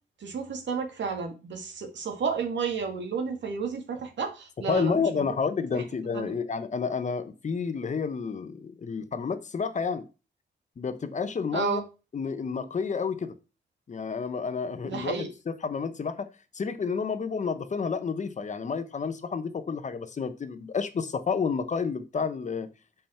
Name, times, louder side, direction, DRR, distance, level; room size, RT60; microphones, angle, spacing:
voice 1, 0.2-5.3 5.7-5.8 6.1-6.3 11.5-11.8 14.8-15.3, right 5 dB, 90° right, 2.1 m, -32 dB
voice 2, 4.7-10.1 10.8-11.8 12.1-13.3 13.9-15.1 15.6-16.3 16.5-22.7, left 5 dB, 40° left, 0.9 m, -30 dB
7.2 x 5.7 x 4.3 m
wide cardioid pair, 165°, 18 cm